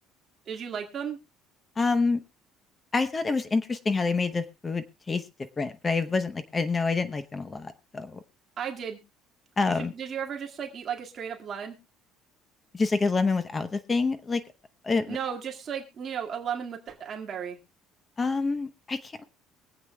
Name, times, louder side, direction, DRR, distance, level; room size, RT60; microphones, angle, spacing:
voice 1, 0.5-1.2 8.6-9.0 9.7-11.8 15.1-17.6, right 7 dB, 35° right, 1 dB, 2.0 m, -34 dB
voice 2, 1.8-2.2 2.9-5.2 5.6-8.2 9.6-9.9 12.7-14.4 14.8-15.2 18.2-19.2, left 4 dB, 20° left, 11 dB, 0.8 m, -27 dB
23.5 x 8.1 x 2.2 m, 0.28 s
cardioid pair, 170°, 0 cm